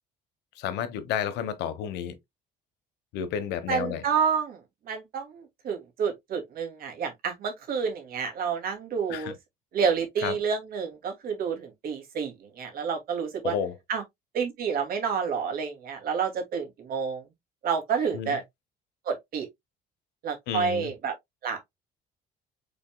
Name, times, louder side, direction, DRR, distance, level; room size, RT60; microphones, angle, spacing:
voice 1, 0.6-2.2 3.1-4.0 9.1-9.3 10.2-10.3 13.4-13.7 18.1-18.4 20.5-20.9, left 8 dB, 85° left, 1.0 m, -31 dB
voice 2, 3.7-4.6 4.9-9.3 9.7-13.5 13.9-14.0 14.3-17.2 17.6-18.4 19.1-19.5 20.2-21.1 21.4-21.7, right 6 dB, 60° right, 2.3 m, -29 dB
5.5 x 4.1 x 2.2 m
cardioid pair, 110°, 17 cm